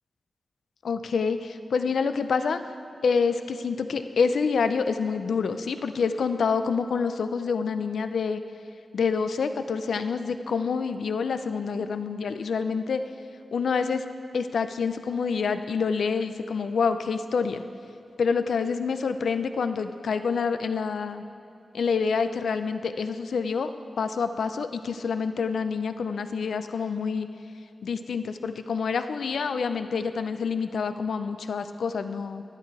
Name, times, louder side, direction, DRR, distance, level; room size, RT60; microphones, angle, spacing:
voice 1, 0.8-2.6 3.0-8.4 8.9-13.0 13.5-14.0 14.3-17.6 18.2-21.2 21.7-23.7 24.0-27.3 27.8-32.4, left 5 dB, 90° left, 10 dB, 0.5 m, -27 dB
11.5 x 10.5 x 4.8 m, 2.5 s
wide cardioid pair, 170°, 0 cm